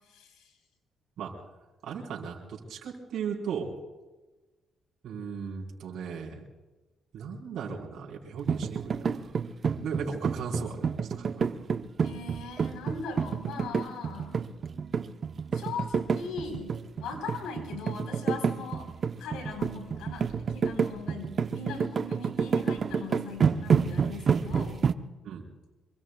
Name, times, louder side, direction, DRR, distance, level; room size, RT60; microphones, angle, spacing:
voice 1, 0.1-0.5 12.0-14.4 15.5-16.7 17.0-18.9 19.2-24.8, left 4 dB, 90° left, 4 dB, 3.9 m, -40 dB
voice 2, 1.8-3.7 5.0-6.4 7.1-9.2 9.8-11.6 25.2-25.4, right 6 dB, 75° right, -3 dB, 4.2 m, -37 dB
sound 1, 8.5-24.9, right 6 dB, 45° right, 0.7 m, -29 dB
26.5 x 23.5 x 2.3 m, 1.2 s
cardioid pair, 90°, 0 cm